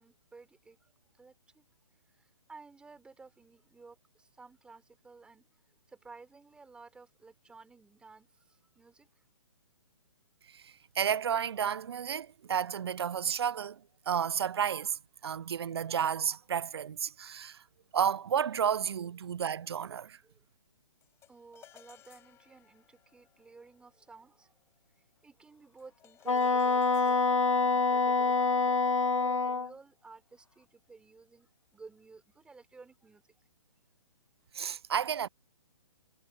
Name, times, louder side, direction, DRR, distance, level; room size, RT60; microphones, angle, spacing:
voice 1, 0.0-1.7 2.1-5.6 5.9-9.2 19.2-19.3 20.2-20.4 21.3-24.5 25.2-28.8 29.1-33.2, right 4 dB, 5° right, 3.6 m, -55 dB
voice 2, 10.5-13.8 14.1-17.6 17.9-20.2 34.5-35.3, right 8 dB, 55° right, 0.4 m, -32 dB
sound 1, 21.0-30.5, left 12 dB, 15° left, 6.0 m, -63 dB
Wind instrument woodwind instrument, 26.3-29.7, left 4 dB, 80° left, 1.0 m, -26 dB
figure-of-eight pair, 130°, 16 cm